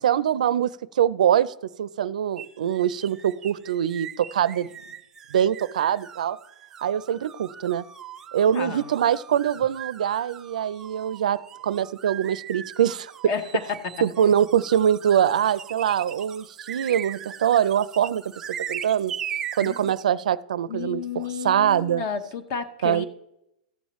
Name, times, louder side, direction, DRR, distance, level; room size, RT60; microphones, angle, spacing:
voice 1, 0.0-4.7 5.3-6.4 6.8-7.8 8.3-11.4 11.6-13.3 14.0-19.1 19.6-22.0 22.8-23.0, right 9 dB, 85° right, 18 dB, 0.4 m, -23 dB
sound 1, 2.4-20.0, right 9 dB, 15° right, 0.3 m, -39 dB
voice 2, 8.5-8.9 13.3-13.5 19.6-19.9 20.7-23.0, left 6 dB, 30° left, 10 dB, 0.8 m, -32 dB
14.0 x 7.2 x 3.1 m, 0.83 s
supercardioid pair, 170°, 4 cm